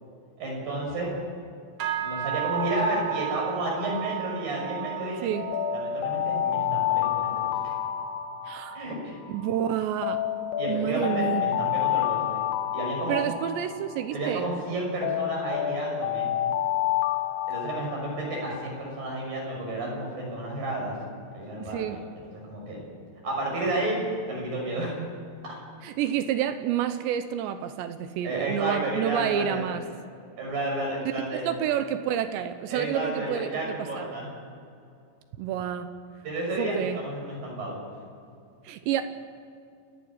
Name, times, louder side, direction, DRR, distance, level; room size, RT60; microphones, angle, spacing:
voice 1, 0.4-1.1 2.0-5.3 5.7-7.3 7.6-7.7 8.7-9.2 10.6-12.4 12.7-13.2 14.1-16.3 17.5-21.0 21.3-21.8 22.5-22.8 23.2-24.0 24.3-24.9 28.2-29.7 30.4-31.4 32.7-34.3 36.2-37.8, right 1 dB, 45° right, -2 dB, 7.7 m, -31 dB
sound 1, 1.8-11.3 11.6-12.1 12.5-12.8 13.4-13.5, right 13 dB, 60° right, 1.5 m, -37 dB
voice 2, 5.2-5.5 8.5-8.8 9.3-10.2 10.7-11.5 13.1-14.5 21.6-22.0 25.8-29.8 31.3-33.5 34.0-34.1 35.4-35.9 36.6-37.0 38.6-39.0, right 10 dB, 75° right, 10 dB, 2.8 m, -29 dB
Alarm, 5.3-9.5 10.0-14.5 15.0-18.8, left 11 dB, 80° left, 2.4 m, -29 dB
29.5 x 11.0 x 9.7 m, 2.4 s
omnidirectional pair, 5.7 m